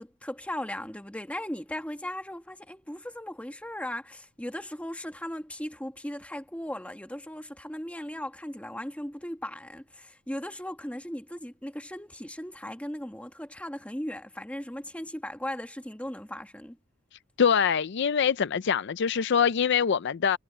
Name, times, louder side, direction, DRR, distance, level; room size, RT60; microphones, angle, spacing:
voice 1, 0.0-16.8, left 1 dB, 5° left, 1.5 m, -37 dB
voice 2, 17.4-20.4, left 7 dB, 60° left, 0.5 m, -24 dB
head